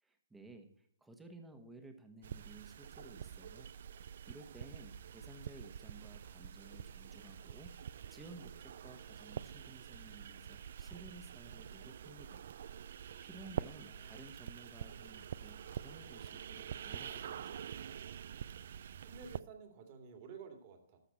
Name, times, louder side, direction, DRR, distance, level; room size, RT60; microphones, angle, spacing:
voice 1, 0.0-3.7 4.3-12.5 12.8-17.7, right 2 dB, 5° right, 6 dB, 1.3 m, -55 dB
sound 1, 2.2-19.4, right 8 dB, 55° right, 0.4 m, -47 dB
sound 2, 3.5-4.6 4.8-7.9 8.1-9.0 9.2-9.5 9.8-10.0 10.5-10.8 11.8-11.9 12.2-12.9 14.0-14.4 15.6-15.9 16.6-17.1 17.4-17.5 17.9-18.2, right 4 dB, 90° right, 4.2 m, -70 dB
voice 2, 13.8-14.2 19.0-21.0, right 5 dB, 35° right, 5 dB, 2.4 m, -52 dB
13.5 x 5.8 x 4.4 m, 0.71 s
hypercardioid pair, 150°, 0 cm